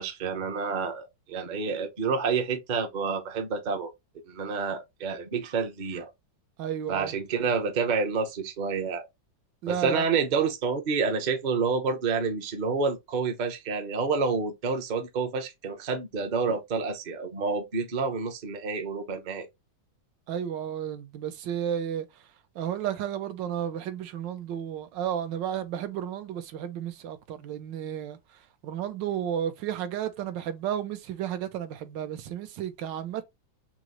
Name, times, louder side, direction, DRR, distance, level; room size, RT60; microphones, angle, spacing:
voice 1, 0.0-3.9 4.3-6.1 6.9-9.1 9.7-19.5, right 5 dB, 45° right, 0.5 m, -28 dB
voice 2, 6.6-7.1 9.6-10.1 20.3-22.1 22.5-28.2 28.6-33.2, right 9 dB, 80° right, 1.3 m, -32 dB
6.0 x 2.0 x 3.0 m
omnidirectional pair, 2.0 m